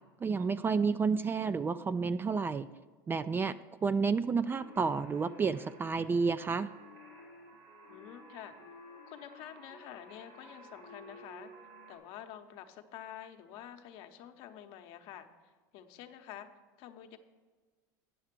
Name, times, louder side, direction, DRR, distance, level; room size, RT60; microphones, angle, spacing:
voice 1, 0.2-2.7 3.1-3.6 3.8-6.7, right 5 dB, 20° right, 13 dB, 0.3 m, -30 dB
sound 1, 4.5-12.0, equal, 80° right, 3.4 m, -53 dB
voice 2, 7.9-8.5 9.1-11.5 11.9-15.3 15.7-16.5 16.8-17.2, left 10 dB, 60° left, 7 dB, 0.9 m, -48 dB
9.4 x 6.5 x 6.0 m, 1.4 s
hypercardioid pair, 95°, 11 cm